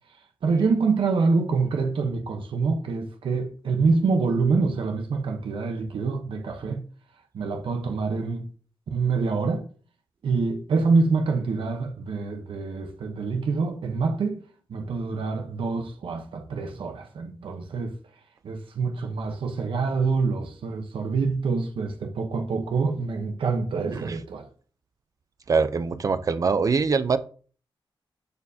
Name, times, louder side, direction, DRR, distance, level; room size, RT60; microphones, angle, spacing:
voice 1, 0.1-6.8 7.3-8.5 8.9-9.7 10.2-14.4 14.7-18.0 18.4-24.5, right 4 dB, 75° right, 1.0 m, -26 dB
voice 2, 25.5-27.2, right 5 dB, 40° right, 0.6 m, -23 dB
13.5 x 4.6 x 2.8 m
wide cardioid pair, 145°, 9 cm